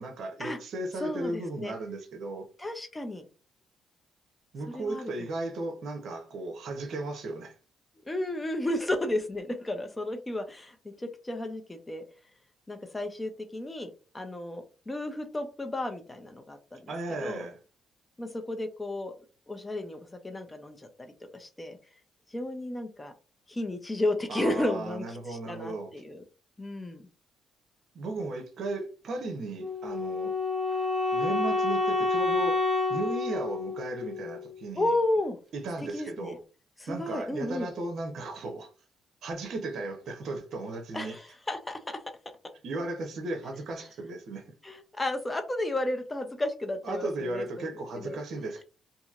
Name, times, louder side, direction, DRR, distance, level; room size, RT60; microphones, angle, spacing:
voice 1, 0.0-2.5 4.5-7.6 16.9-17.6 24.3-25.9 27.9-30.3 31.1-32.6 32.9-34.9 35.5-36.4 36.9-38.7 39.2-41.2 42.6-44.5 46.8-48.6, right 2 dB, 65° right, 0.8 m, -35 dB
voice 2, 1.0-1.7 2.6-3.3 4.7-5.1 8.1-12.0 12.7-13.9 14.1-16.9 17.2-17.5 18.2-19.1 19.5-21.8 22.3-23.1 23.5-26.2 26.6-27.0 34.8-35.4 35.9-36.4 36.8-37.7 40.9-42.0 44.6-47.7 47.9-48.2, left 1 dB, 15° left, 0.6 m, -33 dB
Wind instrument woodwind instrument, 29.6-34.6, left 3 dB, 20° right, 0.8 m, -29 dB
2.9 x 2.6 x 2.5 m
cardioid pair, 90°, 0 cm